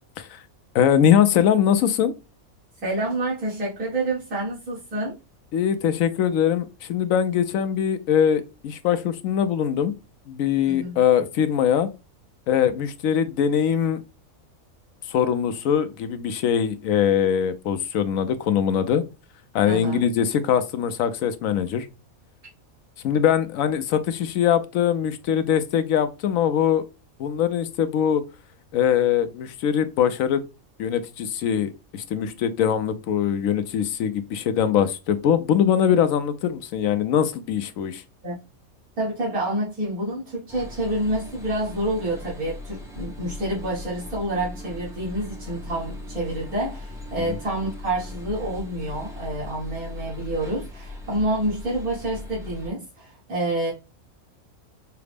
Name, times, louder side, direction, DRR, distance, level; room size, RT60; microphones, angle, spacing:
voice 1, 0.7-2.1 5.5-9.9 10.3-11.9 12.5-14.0 15.1-19.0 19.5-21.9 23.0-26.8 27.2-28.2 28.7-30.4 30.8-38.0, left 9 dB, 75° left, 0.9 m, -22 dB
voice 2, 2.8-5.1 10.7-11.0 19.7-20.0 38.2-38.4 39.0-53.7, right 1 dB, 85° right, 2.0 m, -28 dB
sound 1, 40.5-52.7, left 2 dB, 5° right, 0.4 m, -38 dB
5.6 x 2.0 x 3.3 m
omnidirectional pair, 1.5 m